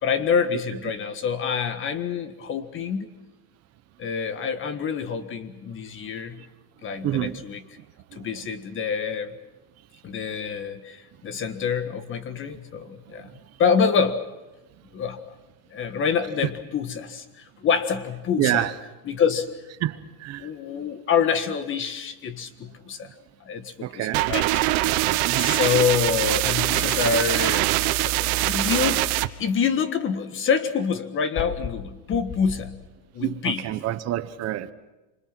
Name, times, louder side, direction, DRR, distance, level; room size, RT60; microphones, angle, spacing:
voice 1, 0.0-3.1 4.0-6.4 6.8-7.6 8.1-9.3 10.0-13.3 13.6-14.2 14.9-15.3 15.7-18.7 19.0-19.5 20.4-23.1 23.4-24.6 24.9-25.1 25.4-27.7 28.0-29.0 29.4-32.7 33.1-33.6, left 6 dB, 25° left, 1.6 m, -26 dB
voice 2, 6.9-7.4 8.1-8.3 18.4-18.7 19.8-20.5 23.8-24.3 25.2-25.6 33.2-34.7, right 14 dB, 35° right, 1.1 m, -27 dB
sound 1, 24.1-29.3, right 17 dB, 70° right, 1.2 m, -23 dB
27.5 x 25.0 x 6.1 m
cardioid pair, 160°, 45 cm